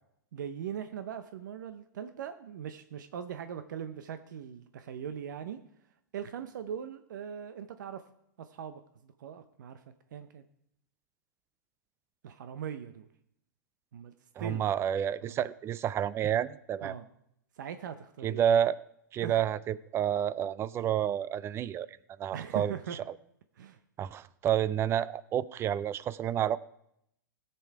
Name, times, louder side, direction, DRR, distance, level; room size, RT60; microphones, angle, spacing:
voice 1, 0.3-5.6 6.1-8.0 8.4-9.8 10.1-10.4 12.2-13.1 13.9-14.1 14.4-14.7 15.3-15.5 16.8-17.0 17.6-18.6 19.2-19.4 22.3-23.0 23.6-23.8, right 8 dB, 70° right, 10 dB, 0.7 m, -40 dB
voice 2, 14.4-16.9 18.2-18.8 19.1-22.7 24.0-26.6, right 9 dB, 25° right, 19 dB, 0.4 m, -29 dB
16.5 x 6.9 x 4.7 m, 0.75 s
hypercardioid pair, 115°, 10 cm